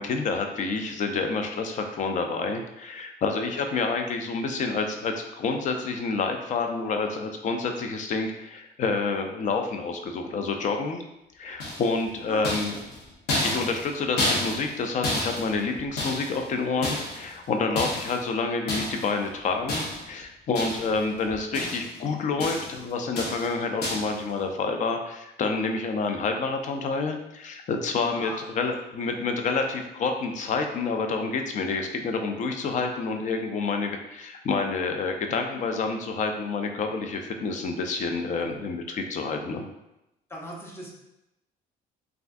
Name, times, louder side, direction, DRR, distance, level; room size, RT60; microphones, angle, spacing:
voice 1, 0.0-11.0 11.3-12.7 13.4-39.7, left 4 dB, 45° left, 4 dB, 0.4 m, -28 dB
sound 1, 11.6-12.0 12.4-14.8 15.0-16.5 16.8-17.3 17.8-18.2 18.7-19.1 19.7-20.2 20.5-21.0 21.3-22.0 22.4-22.8 23.2-23.5 23.8-24.2, left 1 dB, 75° left, 0.9 m, -30 dB
voice 2, 12.3-12.8 13.3-13.5 28.1-28.4 38.5-38.6 40.3-40.9, equal, 15° left, -2 dB, 0.7 m, -40 dB
3.3 x 2.4 x 2.5 m, 0.89 s
cardioid pair, 110°, 17 cm